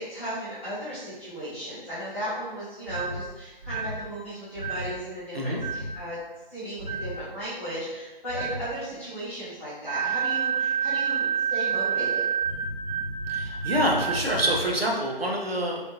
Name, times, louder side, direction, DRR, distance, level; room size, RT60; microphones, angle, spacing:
voice 1, 0.0-6.2 6.5-12.2, equal, 15° left, -14 dB, 0.9 m, -35 dB
sound 1, 2.9-3.2 3.6-4.0 4.5-4.9 5.6-5.9 6.8-7.1 8.3-8.6 9.9-14.6, right 7 dB, 40° right, 0.8 m, -29 dB
voice 2, 13.3-15.8, equal, 85° right, -2 dB, 0.9 m, -26 dB
3.5 x 2.4 x 2.8 m, 1.2 s
figure-of-eight pair, 155°, 29 cm